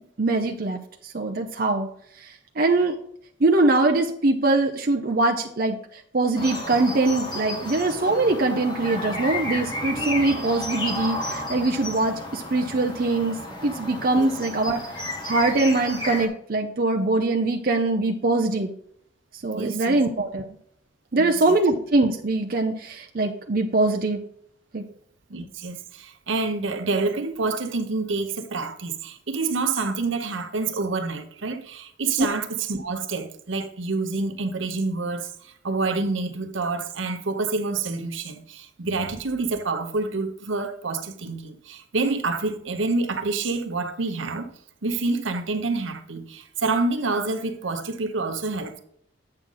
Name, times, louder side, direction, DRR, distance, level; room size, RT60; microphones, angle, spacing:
voice 1, 0.2-0.8 1.1-1.9 2.6-2.9 3.4-5.8 6.1-14.8 15.2-18.7 19.4-20.4 21.1-24.2 24.7-24.8, right 2 dB, 50° right, 0.6 m, -22 dB
sound 1, 6.3-16.3, left 1 dB, 25° left, 1.3 m, -32 dB
voice 2, 19.5-20.0 21.2-21.6 25.3-44.5 44.8-48.8, right 3 dB, 75° right, 0.9 m, -27 dB
8.7 x 6.3 x 3.9 m
head